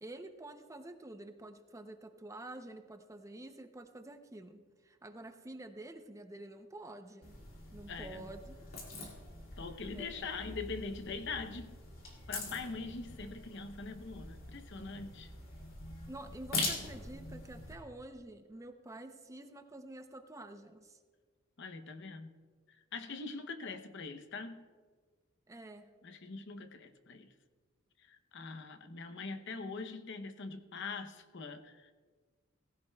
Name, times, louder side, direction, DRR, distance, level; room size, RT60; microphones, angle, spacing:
voice 1, 0.0-7.4 7.7-8.6 9.9-10.3 15.8-21.0 25.5-25.9, right 2 dB, 15° right, 7 dB, 0.6 m, -49 dB
sound 1, 7.2-17.7, left 3 dB, 75° left, 2.8 m, -43 dB
voice 2, 7.9-8.3 9.6-11.8 12.3-15.3 21.6-22.3 22.9-24.7 26.0-27.3 28.0-31.9, left 4 dB, 60° left, 9 dB, 0.8 m, -43 dB
18.5 x 15.5 x 2.3 m, 1.5 s
head